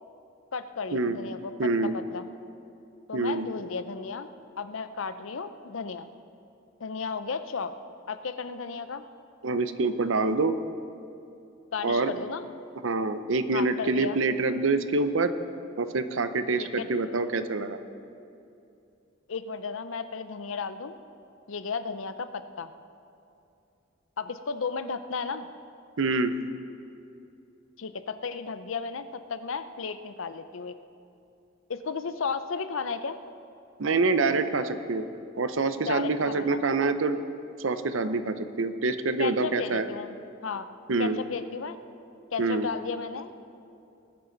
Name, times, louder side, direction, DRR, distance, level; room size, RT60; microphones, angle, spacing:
voice 1, 0.5-2.2 3.1-4.3 4.6-6.1 6.8-7.7 8.1-9.0 11.7-12.5 13.5-14.2 16.6-16.9 19.3-21.0 21.5-22.7 24.2-25.5 27.8-30.8 31.7-33.2 35.9-36.6 39.2-40.2 40.4-40.7 41.0-41.8 42.3-43.3, left 5 dB, 70° left, 11 dB, 0.6 m, -34 dB
voice 2, 1.6-2.0 3.1-3.5 9.4-10.6 11.8-12.1 12.8-15.3 15.8-17.8 26.0-26.3 33.8-35.1 35.4-37.2 37.6-39.9 40.9-41.2 42.4-42.7, right 3 dB, 65° right, 10 dB, 0.7 m, -26 dB
20.5 x 9.5 x 4.0 m, 2.7 s
head